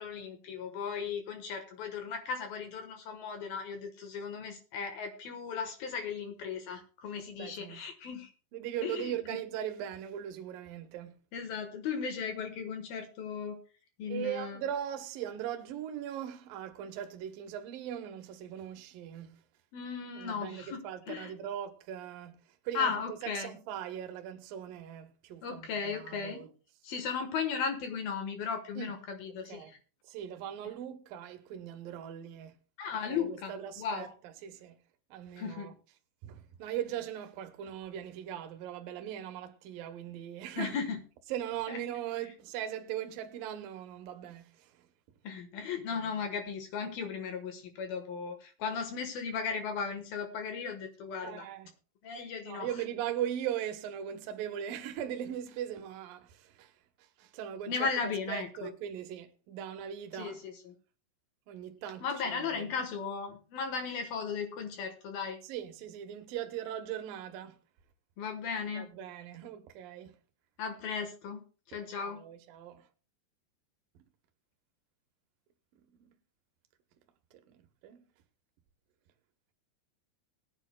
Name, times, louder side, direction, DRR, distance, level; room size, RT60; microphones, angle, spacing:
voice 1, 0.0-8.3 8.8-9.2 11.3-13.6 14.0-14.6 19.7-21.3 22.7-23.5 25.4-26.4 26.8-29.8 32.8-34.1 35.4-35.7 40.6-41.0 41.7-41.8 45.2-51.5 52.0-52.7 57.7-58.7 60.2-60.7 62.0-65.4 68.2-68.9 70.6-71.4 71.7-72.2, left 6 dB, 65° left, 2.7 m, -36 dB
voice 2, 7.4-7.8 8.5-11.2 14.1-19.4 20.2-26.5 28.8-28.9 29.4-29.7 30.0-32.6 33.1-34.8 35.1-35.8 36.2-40.8 41.3-44.9 45.9-46.1 51.2-51.7 52.4-56.7 57.0-60.4 61.5-62.8 65.4-67.6 68.7-70.2 72.0-72.9 75.8-76.1 77.3-78.0, right 10 dB, 70° right, 2.4 m, -40 dB
21.5 x 9.0 x 2.3 m
omnidirectional pair, 5.2 m